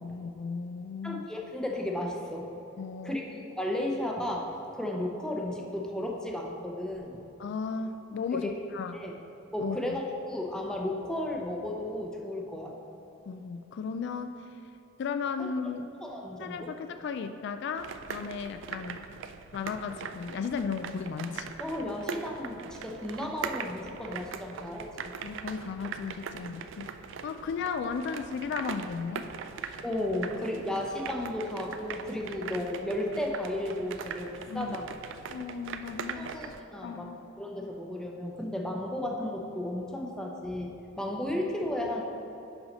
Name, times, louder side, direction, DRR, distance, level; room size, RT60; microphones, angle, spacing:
voice 1, 0.0-1.3 2.8-3.2 7.4-8.9 9.6-10.0 13.3-14.6 15.0-15.9 16.4-19.0 19.5-21.5 25.2-26.9 27.2-29.2 29.6-29.8 34.5-34.8 35.3-36.6 36.8-37.2, left 5 dB, 60° left, 8 dB, 0.3 m, -35 dB
voice 2, 1.0-2.5 3.0-3.2 3.5-7.2 8.4-8.5 8.9-9.1 9.5-10.0 10.3-12.8 15.4-15.5 16.0-16.7 21.6-25.1 29.8-34.9 36.1-37.1 37.4-42.0, left 1 dB, 5° left, -1 dB, 0.7 m, -34 dB
sound 1, 17.8-36.6, right 6 dB, 65° right, 0.3 m, -41 dB
5.8 x 5.5 x 5.3 m, 2.9 s
head